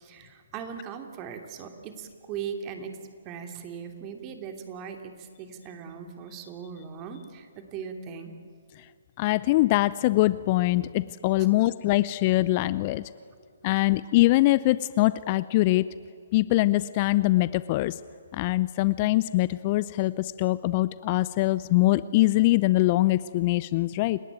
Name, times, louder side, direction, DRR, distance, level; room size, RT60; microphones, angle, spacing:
voice 1, 0.0-3.0 3.2-8.3 11.4-11.7 13.7-13.9, right 7 dB, 25° right, 5 dB, 2.9 m, -39 dB
voice 2, 9.2-13.0 13.6-15.9 16.3-17.9 18.3-24.2, left 18 dB, 35° left, 17 dB, 0.5 m, -23 dB
29.0 x 17.5 x 9.3 m, 2.1 s
figure-of-eight pair, 135°, 0 cm